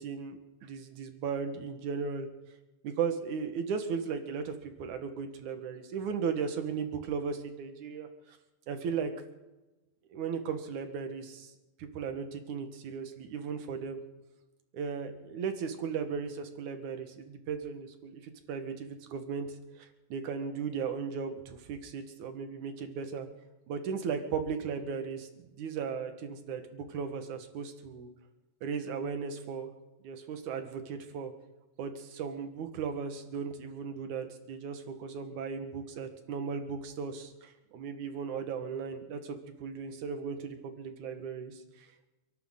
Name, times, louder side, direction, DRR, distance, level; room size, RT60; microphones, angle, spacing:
voice 1, 0.0-2.3 2.8-8.1 8.7-9.1 10.1-11.5 11.8-14.0 14.7-19.5 19.8-23.3 23.7-28.1 28.6-29.7 30.0-31.3 31.8-42.1, right 6 dB, 70° right, 7 dB, 2.8 m, -36 dB
30.0 x 11.5 x 3.9 m, 1.1 s
omnidirectional pair, 3.8 m